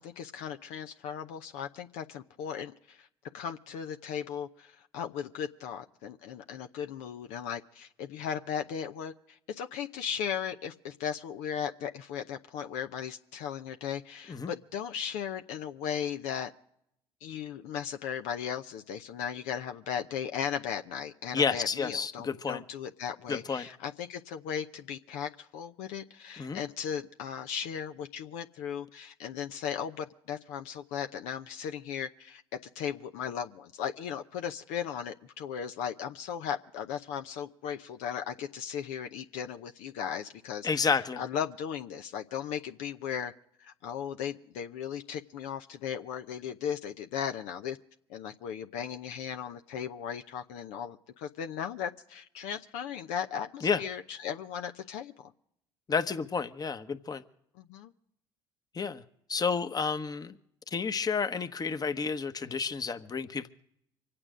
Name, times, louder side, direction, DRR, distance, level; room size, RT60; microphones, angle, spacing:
voice 1, 0.0-3.1 3.3-16.5 17.2-32.4 32.7-43.3 43.6-47.8 48.1-55.3 57.6-57.9, left 8 dB, 70° left, 6 dB, 0.7 m, -37 dB
voice 2, 21.3-22.6 23.3-23.7 26.4-26.6 40.6-41.2 53.6-53.8 55.9-57.2 58.7-59.0 59.3-60.4 60.7-63.5, left 5 dB, 30° left, 10 dB, 1.1 m, -30 dB
25.5 x 8.9 x 5.0 m, 0.71 s
hypercardioid pair, 60°, 13 cm